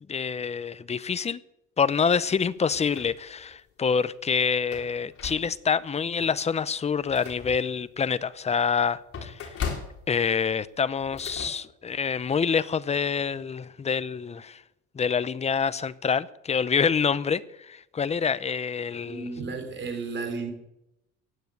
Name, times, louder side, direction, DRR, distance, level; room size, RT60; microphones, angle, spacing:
voice 1, 0.1-1.4 1.8-9.6 10.1-14.6 14.9-19.3, left 6 dB, 20° left, 16 dB, 0.7 m, -26 dB
sound 1, 2.3-3.6 4.0-4.1 4.6-5.8 6.3-6.4 6.8-11.5, left 6 dB, 50° left, 3.7 m, -39 dB
voice 2, 19.0-20.5, right 4 dB, 40° right, 6 dB, 3.9 m, -33 dB
16.0 x 9.4 x 8.0 m, 0.84 s
cardioid pair, 115°, 29 cm